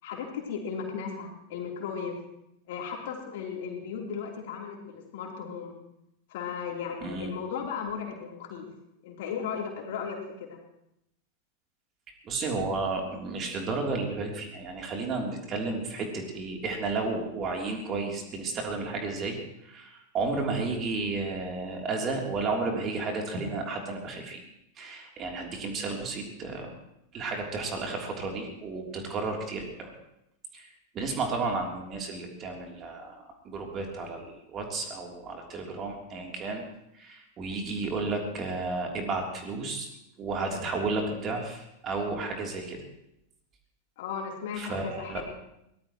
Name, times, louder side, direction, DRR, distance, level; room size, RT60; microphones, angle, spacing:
voice 1, 0.0-2.1 2.7-5.7 6.3-8.6 9.0-10.6 44.0-45.2, left 6 dB, 55° left, 0 dB, 3.5 m, -36 dB
voice 2, 12.2-24.4 24.8-26.7 27.1-29.9 30.5-30.7 30.9-36.6 36.9-39.9 40.2-42.8 44.6-45.2, right 3 dB, 30° right, 1 dB, 3.3 m, -32 dB
23.0 x 18.0 x 3.1 m, 0.82 s
figure-of-eight pair, 90°, 0 cm